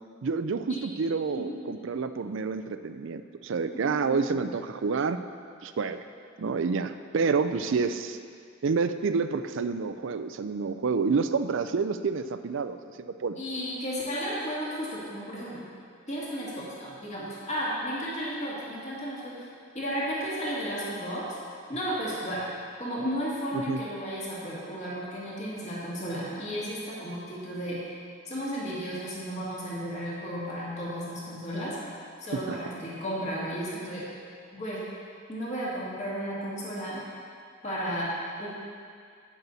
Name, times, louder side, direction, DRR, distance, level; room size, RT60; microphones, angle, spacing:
voice 1, 0.2-5.2 5.6-6.0 6.4-8.2 8.6-13.4 23.5-23.8 32.5-32.6, right 4 dB, 65° right, 10 dB, 0.4 m, -28 dB
voice 2, 13.4-15.7 16.1-19.5 19.7-21.3 21.7-22.4 22.8-27.8 28.3-31.8 32.2-34.1 34.5-34.8 35.3-37.0 37.6-38.1 38.4-38.5, equal, 35° left, -7 dB, 2.1 m, -33 dB
11.0 x 8.5 x 4.1 m, 2.2 s
head